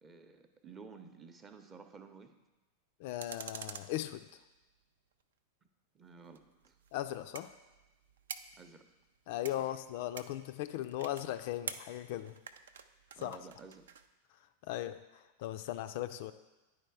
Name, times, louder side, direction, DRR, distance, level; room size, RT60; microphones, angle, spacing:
voice 1, 0.0-2.3 5.9-6.7 8.6-8.8 9.6-9.7 13.2-13.9, right 5 dB, 20° right, 7 dB, 0.7 m, -53 dB
voice 2, 3.0-4.3 6.9-7.5 9.3-12.4 13.2-13.4 14.6-16.3, left 13 dB, 50° left, 10 dB, 0.3 m, -38 dB
sound 1, 3.2-4.8 6.2-14.1, right 7 dB, 65° right, 0.4 m, -48 dB
9.9 x 4.5 x 4.6 m, 1.1 s
figure-of-eight pair, 90°, 0 cm